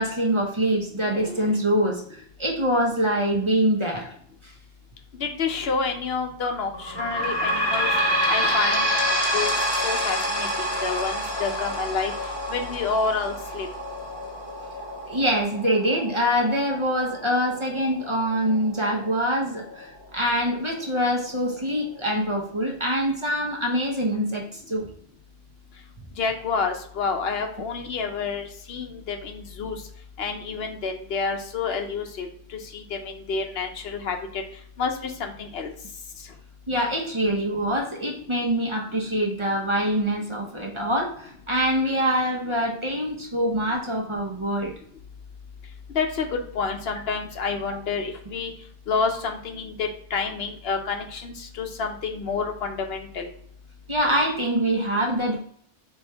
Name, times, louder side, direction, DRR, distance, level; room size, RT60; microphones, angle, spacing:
voice 1, 0.0-4.1 4.4-4.5 15.1-24.9 36.7-44.7 53.9-55.4, equal, 30° right, 0 dB, 0.8 m, -24 dB
voice 2, 5.2-7.9 8.3-8.9 9.3-9.5 9.8-12.1 12.5-13.7 26.2-29.8 30.2-34.4 34.8-35.7 45.9-48.5 48.9-53.3, left 5 dB, 75° left, 4 dB, 0.9 m, -29 dB
sound 1, 6.7-19.9 20.5-20.6 20.8-20.9 21.7-21.8, equal, 25° left, 1.2 m, -28 dB
4.4 x 3.1 x 3.3 m, 0.63 s
omnidirectional pair, 1.0 m